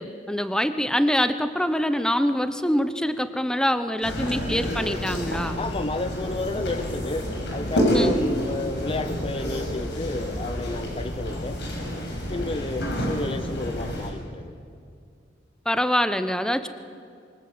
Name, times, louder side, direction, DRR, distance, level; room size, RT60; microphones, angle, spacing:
voice 1, 0.0-5.6 7.9-8.2 15.7-16.7, equal, 5° left, 10 dB, 0.9 m, -24 dB
sound 1, 4.0-14.1, equal, 65° left, 6.0 m, -28 dB
voice 2, 5.6-11.6 12.3-14.6, left 2 dB, 30° left, 10 dB, 0.7 m, -31 dB
26.0 x 24.0 x 7.9 m, 2.4 s
head